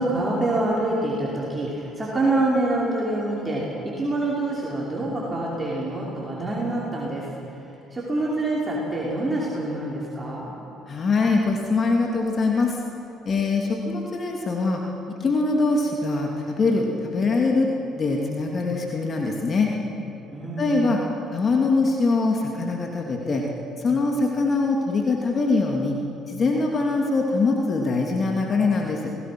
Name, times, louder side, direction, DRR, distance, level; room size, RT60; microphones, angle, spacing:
voice 1, 0.0-7.3 7.9-10.5 20.3-21.0, right 2 dB, 25° right, -5 dB, 5.4 m, -26 dB
voice 2, 10.9-12.8 13.2-14.8 15.2-17.7 18.0-19.7 20.6-21.0 21.3-23.4 23.8-26.0 26.3-29.1, left 3 dB, 45° left, 0 dB, 2.6 m, -23 dB
28.5 x 19.0 x 6.1 m, 2.8 s
hypercardioid pair, 60°, 0 cm